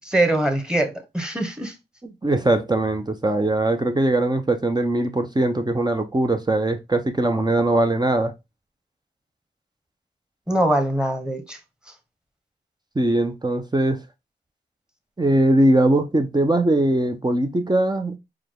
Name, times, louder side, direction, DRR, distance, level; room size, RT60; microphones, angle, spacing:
voice 1, 0.0-1.7 10.5-11.6, right 1 dB, 5° right, 1.2 m, -22 dB
voice 2, 2.0-8.3 12.9-14.0 15.2-18.2, right 1 dB, 20° right, 0.7 m, -21 dB
4.8 x 2.3 x 3.7 m
cardioid pair, 45°, 19 cm